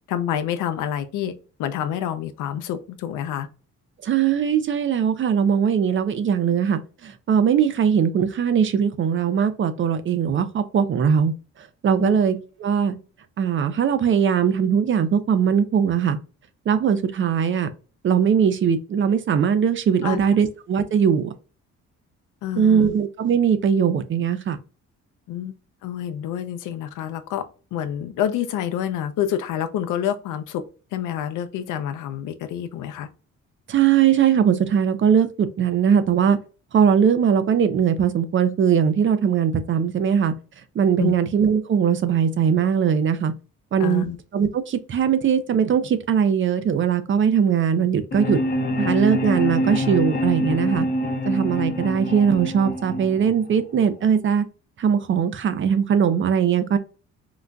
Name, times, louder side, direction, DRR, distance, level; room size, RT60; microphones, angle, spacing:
voice 1, 0.1-1.3 1.6-3.5 12.0-12.2 20.0-20.2 22.4-22.9 25.3-25.5 25.8-27.4 27.7-30.6 30.9-33.1 41.0-41.1 43.8-44.2, left 10 dB, 85° left, 0.5 m, -27 dB
voice 2, 4.0-11.3 11.8-13.0 13.4-16.2 16.7-17.7 18.0-21.3 22.6-24.6 33.7-36.4 36.7-40.3 40.8-43.3 43.7-44.1 44.3-48.4 48.8-50.9 51.2-54.4 54.8-56.8, right 7 dB, 40° right, 0.4 m, -20 dB
sound 1, 48.1-54.1, equal, 30° left, 0.7 m, -25 dB
3.8 x 2.2 x 2.2 m
cardioid pair, 90°, 30 cm